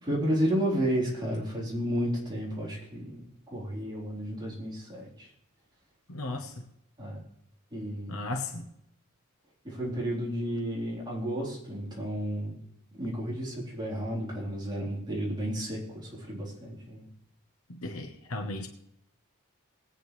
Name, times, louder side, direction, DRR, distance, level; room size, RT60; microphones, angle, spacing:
voice 1, 0.1-5.3 7.0-7.2 7.7-8.3 9.6-12.6 12.9-17.1, equal, 20° right, 3.9 m, -32 dB
voice 2, 6.1-6.5 8.1-8.7 17.7-18.7, left 2 dB, 80° left, 1.1 m, -35 dB
20.0 x 8.9 x 3.3 m
head